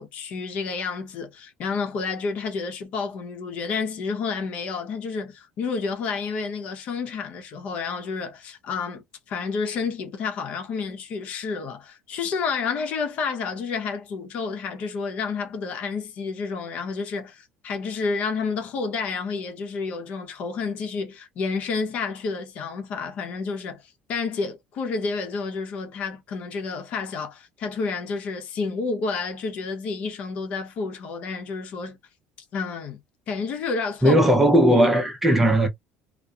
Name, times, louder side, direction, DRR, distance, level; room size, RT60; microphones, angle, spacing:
voice 1, 0.0-23.8 24.1-32.0 32.5-33.0 33.3-34.2, left 4 dB, 50° left, 0.8 m, -30 dB
voice 2, 34.0-35.7, right 1 dB, 10° right, 0.7 m, -17 dB
2.7 x 2.1 x 2.3 m
cardioid pair, 145°, 3 cm